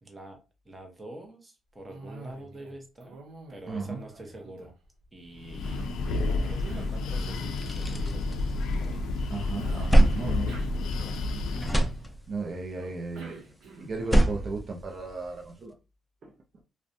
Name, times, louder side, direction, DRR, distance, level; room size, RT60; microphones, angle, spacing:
voice 1, 0.0-0.4 0.6-3.2 3.5-4.7 5.1-8.5 8.8-9.0, right 1 dB, 20° right, 0.8 m, -46 dB
Cough, 1.9-2.7 3.0-5.1 5.6-7.6 9.5-11.6 12.8-14.1, right 3 dB, 80° right, 0.7 m, -47 dB
voice 2, 3.7-4.0 9.3-11.8 12.3-15.8 16.2-16.3, right 3 dB, 50° right, 0.5 m, -36 dB
Breathing, 5.3-12.0, left 3 dB, 85° left, 0.3 m, -30 dB
sound 1, 6.9-7.0 7.4-9.0 9.4-11.3 11.5-12.6 13.9-15.5, right 1 dB, 5° left, 0.4 m, -25 dB
2.5 x 2.1 x 2.6 m
cardioid pair, 90°, 0 cm